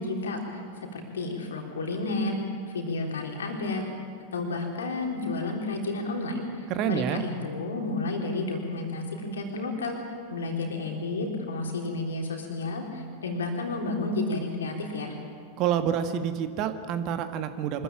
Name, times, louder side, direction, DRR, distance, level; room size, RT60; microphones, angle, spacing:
voice 1, 0.0-2.4 2.7-3.8 4.3-10.0 10.3-15.2, left 2 dB, 65° left, 2 dB, 3.7 m, -31 dB
voice 2, 6.7-7.2 15.6-17.8, right 9 dB, 40° right, 9 dB, 1.4 m, -28 dB
24.5 x 14.0 x 9.0 m, 2.2 s
figure-of-eight pair, 90°, 0 cm